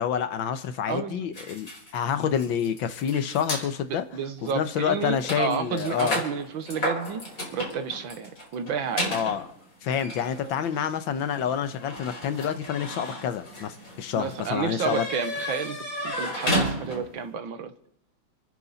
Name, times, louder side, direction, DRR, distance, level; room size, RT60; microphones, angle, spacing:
voice 1, 0.0-4.0 4.5-6.2 9.1-9.4 9.8-15.0, left 8 dB, 70° left, 11 dB, 1.6 m, -28 dB
voice 2, 0.9-1.3 3.9-7.2 7.5-9.2 14.2-17.7, right 7 dB, 70° right, 10 dB, 1.8 m, -31 dB
sound 1, 1.3-3.7 4.4-4.5 4.8-17.2, left 1 dB, 40° left, 5.1 m, -33 dB
29.5 x 10.0 x 4.1 m, 0.77 s
omnidirectional pair, 2.3 m